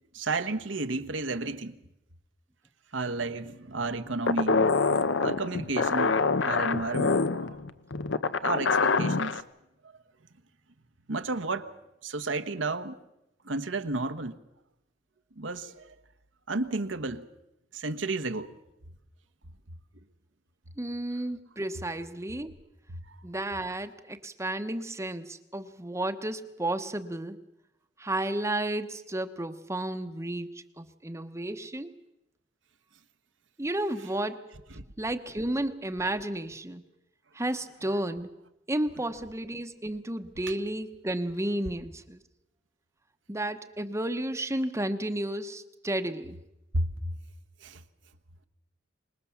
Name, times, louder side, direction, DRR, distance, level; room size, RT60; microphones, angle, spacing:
voice 1, 0.1-1.8 2.9-7.6 8.4-9.4 11.1-11.7 12.0-13.0 13.4-14.4 15.4-15.9 16.5-17.3 17.7-18.5 22.9-23.1 34.8-34.9 46.7-46.9 47.6-47.8, right 3 dB, 90° right, 1.3 m, -32 dB
sound 1, 4.3-9.4, left 4 dB, 75° left, 0.8 m, -25 dB
voice 2, 20.8-22.5 23.2-27.4 28.0-32.0 33.6-34.5 35.0-36.8 37.3-38.3 38.7-42.2 43.3-46.4, right 1 dB, 15° right, 0.9 m, -32 dB
25.0 x 20.5 x 7.2 m
head